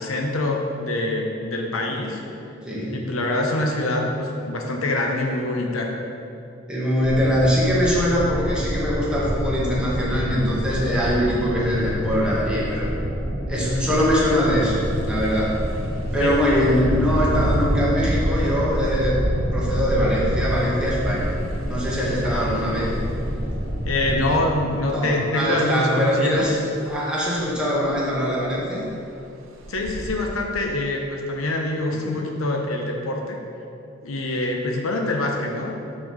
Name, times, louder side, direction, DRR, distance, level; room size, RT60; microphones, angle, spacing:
voice 1, 0.0-2.2 2.9-5.9 16.2-16.4 22.3-22.4 23.8-26.5 29.7-33.4 34.0-35.7, left 2 dB, 80° left, 1 dB, 0.8 m, -25 dB
voice 2, 2.6-3.1 6.7-12.9 13.5-15.5 16.1-19.2 19.5-21.3 21.7-22.9 24.9-26.5 26.9-28.8, equal, 5° right, -7 dB, 1.6 m, -22 dB
sound 1, 7.0-24.3, equal, 40° right, 1.8 m, -28 dB
Engine, 14.6-14.8 15.3-15.4 16.6-22.4 23.3-23.4 23.8-24.6 26.4-26.5 26.9-27.0 27.4-27.5 27.8-28.3 28.9-29.0 29.6-30.1, right 1 dB, 70° right, 0.9 m, -27 dB
6.2 x 4.3 x 6.3 m, 2.6 s
head